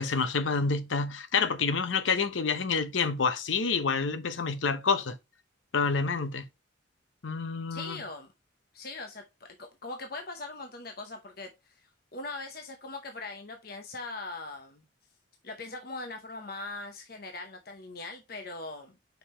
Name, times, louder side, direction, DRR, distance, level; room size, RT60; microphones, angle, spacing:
voice 1, 0.0-5.2 5.7-6.5 7.2-8.0, left 4 dB, 85° left, 0.8 m, -28 dB
voice 2, 7.7-8.3 8.7-14.8 15.4-18.9, left 3 dB, 50° left, 0.8 m, -41 dB
5.3 x 4.9 x 4.3 m
head